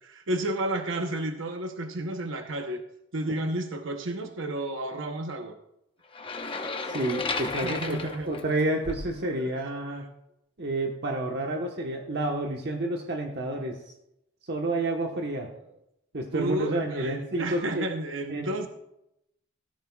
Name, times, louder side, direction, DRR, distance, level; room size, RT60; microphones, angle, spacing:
voice 1, 0.0-2.8 3.1-5.6 7.6-8.3 9.4-9.5 15.1-15.2 16.3-18.7, right 1 dB, 75° right, 5 dB, 0.9 m, -32 dB
sound 1, 6.1-9.2, left 3 dB, 25° left, 0.9 m, -33 dB
voice 2, 6.9-10.0 10.6-13.8 14.5-15.5 16.1-17.9 18.3-18.7, right 2 dB, 55° right, 1 dB, 1.2 m, -30 dB
16.5 x 13.5 x 2.3 m, 0.83 s
head